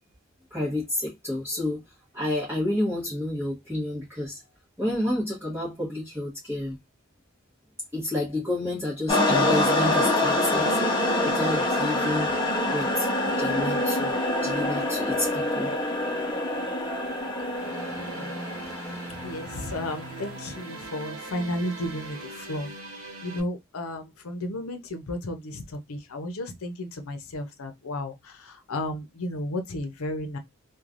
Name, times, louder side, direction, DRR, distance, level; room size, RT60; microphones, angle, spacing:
voice 1, 0.5-1.8 2.1-4.4 4.8-6.8 7.9-14.2 14.4-15.7, left 1 dB, 10° right, 1.1 m, -30 dB
sound 1, 9.1-20.6, left 1 dB, 20° left, 0.7 m, -26 dB
sound 2, 17.5-23.4, right 2 dB, 65° right, 0.8 m, -40 dB
voice 2, 18.0-18.3 19.2-30.4, left 1 dB, 75° left, 0.7 m, -33 dB
3.1 x 2.3 x 2.4 m
head